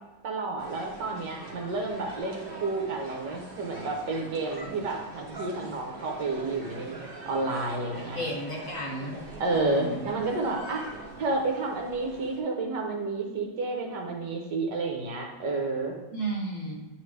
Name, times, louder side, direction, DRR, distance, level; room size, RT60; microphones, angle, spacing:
voice 1, 0.2-8.2 9.4-10.8 11.2-16.0, right 3 dB, 65° right, 1 dB, 1.4 m, -30 dB
sound 1, 0.6-12.4, right 2 dB, 35° right, 1.1 m, -43 dB
voice 2, 8.1-9.2 9.5-10.0 16.1-16.8, right 1 dB, 45° left, -3 dB, 1.5 m, -33 dB
9.5 x 3.4 x 3.3 m, 1.2 s
omnidirectional pair, 2.1 m